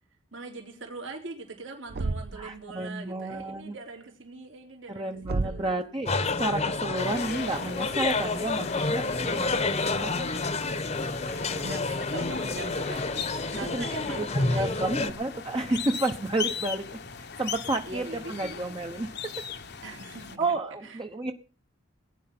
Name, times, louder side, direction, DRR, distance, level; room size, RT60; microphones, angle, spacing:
voice 1, 0.3-6.0 11.3-13.0 13.5-15.0 17.8-18.6 19.8-20.4 20.8-21.0, right 3 dB, 75° right, 1 dB, 3.4 m, -41 dB
Thump thud, 1.9-2.5 5.2-5.8, right 3 dB, 55° right, 0.6 m, -31 dB
voice 2, 2.3-3.8 4.9-10.3 13.7-13.9 14.2-16.8 17.2-19.3 20.4-21.3, right 2 dB, 25° right, 4 dB, 1.0 m, -31 dB
sound 1, 6.1-15.1, left 3 dB, 35° left, 1.2 m, -29 dB
sound 2, 6.9-20.4, left 6 dB, 60° left, 1.2 m, -39 dB
18.5 x 10.0 x 6.0 m, 0.41 s
head